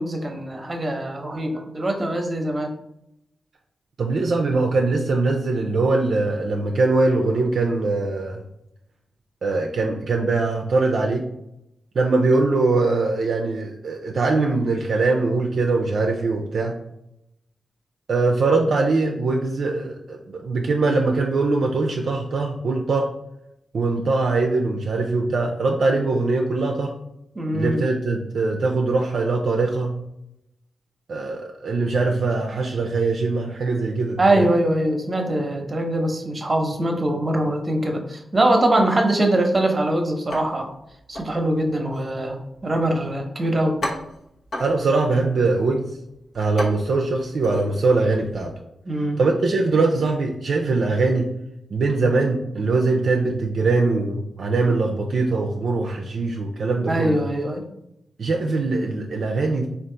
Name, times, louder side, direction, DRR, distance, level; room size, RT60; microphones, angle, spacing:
voice 1, 0.0-2.7 27.4-27.8 34.2-40.7 41.1-43.8 48.9-49.2 56.9-57.6, right 1 dB, 35° right, 4 dB, 0.8 m, -22 dB
voice 2, 4.0-8.4 9.4-11.3 11.9-16.8 18.1-23.1 23.7-26.9 27.5-30.0 31.1-34.5 44.6-45.9 46.3-48.5 49.2-51.3 51.7-57.2 58.2-59.7, right 3 dB, 70° right, 1 dB, 0.4 m, -22 dB
sound 1, 40.3-48.5, left 1 dB, 70° left, 0.9 m, -36 dB
3.5 x 2.4 x 3.8 m, 0.81 s
cardioid pair, 50°, 0 cm